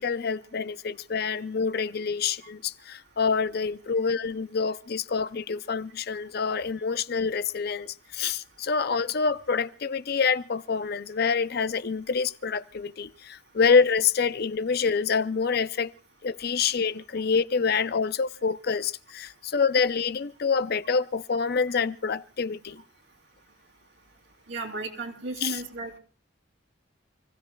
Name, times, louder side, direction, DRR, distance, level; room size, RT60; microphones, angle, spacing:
voice 1, 0.0-15.9 16.2-22.8 25.4-25.6, left 5 dB, 55° left, 0.6 m, -26 dB
voice 2, 24.5-26.0, right 3 dB, 75° right, 3.4 m, -34 dB
29.0 x 16.0 x 2.3 m
head